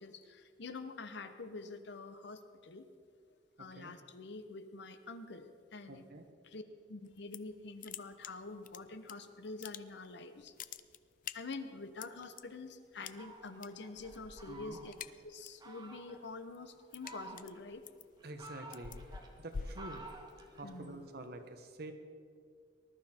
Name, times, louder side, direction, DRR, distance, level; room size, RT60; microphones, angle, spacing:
voice 1, 0.0-2.8 3.6-6.0 6.4-6.6 6.9-10.5 11.3-14.9 15.2-17.8 20.6-21.1, left 3 dB, 65° left, 9 dB, 0.9 m, -46 dB
voice 2, 5.9-6.3 14.5-14.8 18.2-20.0 20.5-21.9, right 2 dB, 55° right, 6 dB, 1.2 m, -48 dB
sound 1, 7.1-7.6 7.8-9.1 9.5-10.1 10.4-12.4 13.0-13.7 14.0-14.3 14.6-15.7 16.1-20.6, left 6 dB, 45° left, 0.5 m, -46 dB
Fowl, 13.0-15.1 15.6-16.2 16.8-17.7 18.2-21.0, right 2 dB, 20° right, 1.6 m, -52 dB
20.0 x 12.0 x 4.4 m, 2.2 s
head